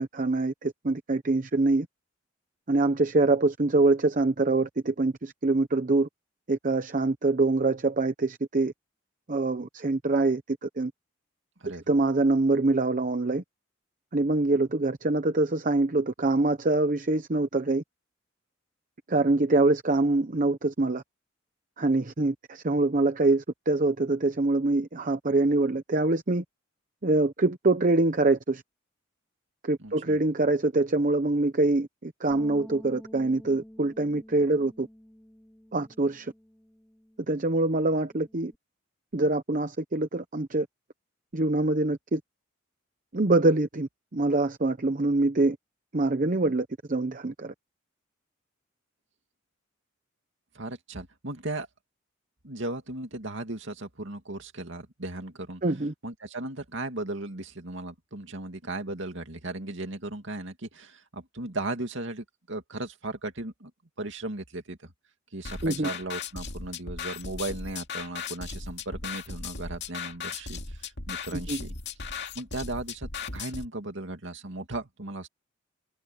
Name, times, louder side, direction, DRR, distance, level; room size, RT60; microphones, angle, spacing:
voice 1, 0.0-1.9 2.7-6.1 6.5-8.7 9.3-10.9 11.9-13.4 14.1-17.8 19.1-21.0 21.8-26.4 27.0-28.6 29.6-34.9 35.7-36.3 37.3-38.5 39.1-40.7 41.3-42.2 43.1-45.6 45.9-47.5 55.6-55.9 65.6-65.9 71.5-71.6, right 2 dB, 40° right, 0.9 m, -25 dB
voice 2, 11.6-11.9 29.8-30.2 50.5-51.7 52.4-55.6 56.0-63.7 64.0-64.9 65.3-71.7 72.3-75.3, right 2 dB, 65° right, 2.6 m, -36 dB
Bass guitar, 32.3-38.6, equal, 5° left, 4.4 m, -50 dB
sound 1, 65.4-73.6, left 5 dB, 60° left, 2.5 m, -37 dB
head